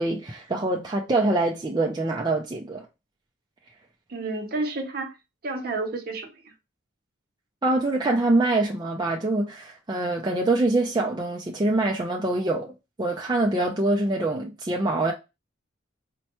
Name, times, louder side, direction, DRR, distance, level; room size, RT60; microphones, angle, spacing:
voice 1, 0.0-2.9 7.6-12.7 13.0-15.1, right 2 dB, 20° right, 0.4 m, -24 dB
voice 2, 4.1-5.1 5.4-6.5, right 3 dB, 45° right, 0.7 m, -30 dB
4.3 x 2.2 x 2.9 m
head